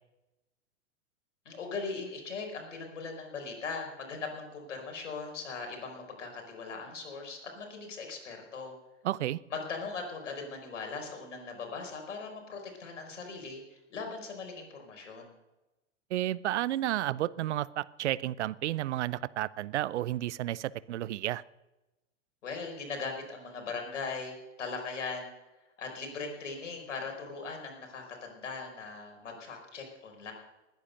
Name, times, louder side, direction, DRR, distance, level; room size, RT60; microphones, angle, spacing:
voice 1, 1.4-8.7 9.5-15.3 22.4-25.3 25.8-30.3, left 4 dB, 75° left, 3 dB, 4.9 m, -39 dB
voice 2, 9.0-9.4 16.1-21.4, right 13 dB, 65° right, 20 dB, 0.6 m, -32 dB
20.0 x 9.8 x 6.6 m, 1.0 s
hypercardioid pair, 100°, 37 cm